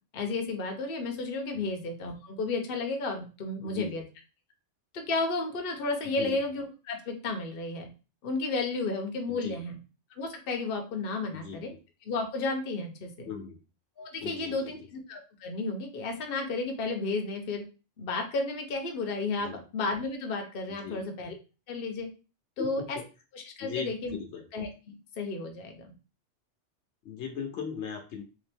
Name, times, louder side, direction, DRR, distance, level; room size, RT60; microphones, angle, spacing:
voice 1, 0.1-4.0 4.9-7.9 8.2-9.8 10.1-11.7 12.0-13.3 14.0-17.6 18.0-21.3 21.7-22.1 22.6-23.0 23.3-24.2 24.5-25.9, left 3 dB, 55° left, 3 dB, 0.9 m, -33 dB
voice 2, 3.6-3.9 6.2-6.4 9.3-9.6 11.3-11.6 13.2-13.6 14.2-14.7 19.4-19.6 20.8-21.0 22.6-23.0 23.6-24.5 27.0-28.2, left 7 dB, 75° left, 3 dB, 1.0 m, -38 dB
3.4 x 2.9 x 3.4 m, 0.33 s
omnidirectional pair, 1.2 m